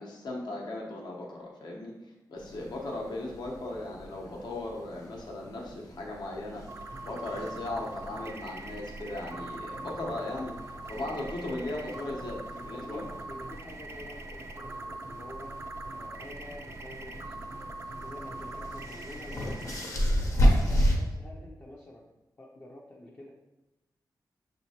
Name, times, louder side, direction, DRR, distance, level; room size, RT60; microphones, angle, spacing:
voice 1, 0.0-1.9 2.3-10.5 10.9-12.4 12.7-13.1, left 2 dB, 75° left, -1 dB, 0.9 m, -37 dB
sound 1, 2.4-21.0, equal, 45° left, 0.8 m, -34 dB
sound 2, 6.7-19.8, right 2 dB, 40° right, 0.3 m, -42 dB
voice 2, 11.4-11.7 12.0-15.5 15.9-17.4 18.0-19.7 20.5-22.1 22.4-23.3, left 1 dB, 25° left, -3 dB, 0.4 m, -47 dB
6.3 x 3.0 x 2.8 m, 0.98 s
wide cardioid pair, 165°, 7 cm